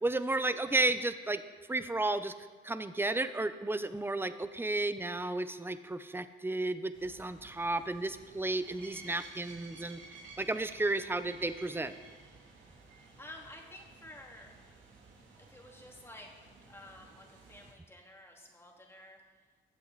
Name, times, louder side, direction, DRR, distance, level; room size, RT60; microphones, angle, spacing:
voice 1, 0.0-1.4 1.7-2.3 2.6-10.0 10.4-11.9, right 2 dB, 10° right, 12 dB, 0.7 m, -33 dB
sound 1, 6.9-17.7, right 3 dB, 70° right, 3.1 m, -54 dB
voice 2, 13.2-14.5 15.4-16.3 16.7-19.2, left 1 dB, 10° left, 0 dB, 2.5 m, -51 dB
20.5 x 7.7 x 4.1 m, 1.4 s
cardioid pair, 90°, 20 cm